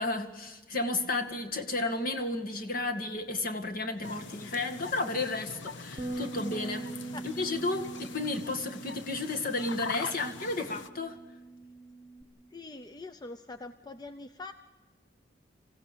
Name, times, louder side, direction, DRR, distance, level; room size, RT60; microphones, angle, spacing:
voice 1, 0.0-6.9 7.2-11.2, left 2 dB, 50° left, 1.9 m, -32 dB
sound 1, 4.0-10.9, left 4 dB, 80° left, 1.0 m, -43 dB
Bass guitar, 6.0-12.2, right 2 dB, 25° right, 1.1 m, -42 dB
voice 2, 12.5-14.5, left 2 dB, 20° left, 0.6 m, -43 dB
26.0 x 16.0 x 6.8 m
head